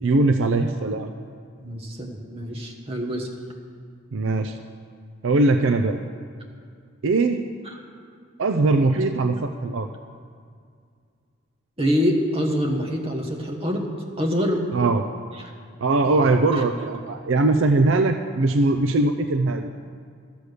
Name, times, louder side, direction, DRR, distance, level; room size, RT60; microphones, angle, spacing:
voice 1, 0.0-1.1 4.1-4.6 5.2-6.0 7.0-7.4 8.4-9.9 14.7-15.1 15.8-19.7, right 2 dB, 65° right, 6 dB, 0.4 m, -21 dB
voice 2, 1.6-3.3 7.7-7.8 11.8-14.6 15.4-15.5 16.0-16.3, equal, 25° right, 1 dB, 1.2 m, -25 dB
12.5 x 8.2 x 6.6 m, 2.2 s
head